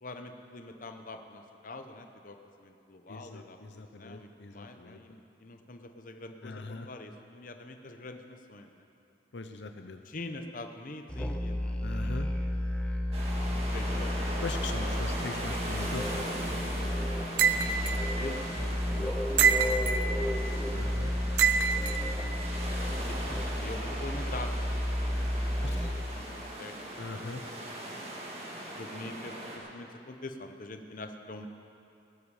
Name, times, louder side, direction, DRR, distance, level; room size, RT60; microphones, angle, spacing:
voice 1, 0.0-8.8 10.0-12.2 13.7-14.3 17.9-20.4 21.8-22.8 23.1-24.7 25.6-27.0 28.7-31.5, left 2 dB, 45° left, 6 dB, 0.8 m, -45 dB
voice 2, 3.1-5.0 6.4-6.9 9.3-10.0 11.8-12.3 14.4-16.3 18.9-19.1 20.7-21.1 25.6-25.9 27.0-27.4, left 3 dB, 75° left, 7 dB, 0.7 m, -40 dB
Musical instrument, 11.1-26.1, left 1 dB, 5° left, 0.7 m, -32 dB
sound 1, 13.1-29.6, right 1 dB, 35° right, 2.1 m, -39 dB
sound 2, 17.4-18.0 19.4-20.0 21.4-22.0, right 7 dB, 70° right, 0.6 m, -25 dB
18.5 x 12.5 x 4.9 m, 2.7 s
head